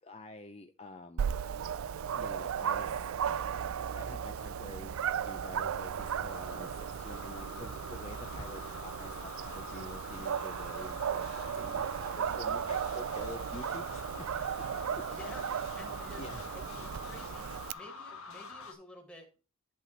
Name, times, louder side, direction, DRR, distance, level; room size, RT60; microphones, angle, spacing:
voice 1, 0.0-1.4 2.2-3.1 3.9-4.9 5.2-14.3 14.9-15.3 16.2-16.4, left 2 dB, 30° left, 5 dB, 0.5 m, -48 dB
Dog, 1.2-17.7, right 8 dB, 75° right, 0.4 m, -36 dB
sound 1, 3.1-18.7, left 4 dB, 80° left, 1.5 m, -47 dB
sound 2, 4.5-17.6, right 2 dB, 45° right, 1.0 m, -56 dB
voice 2, 15.0-15.5 15.8-19.3, left 1 dB, 5° left, 2 dB, 1.7 m, -51 dB
11.0 x 4.2 x 4.4 m, 0.33 s
head